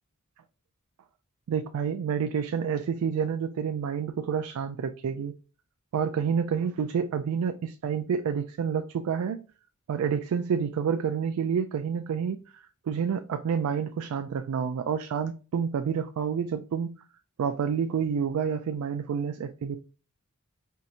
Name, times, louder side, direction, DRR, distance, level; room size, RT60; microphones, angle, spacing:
voice 1, 1.5-5.3 5.9-9.4 9.9-12.4 12.9-17.0 17.4-19.8, right 7 dB, 80° right, 0.3 m, -28 dB
4.5 x 2.7 x 2.5 m
head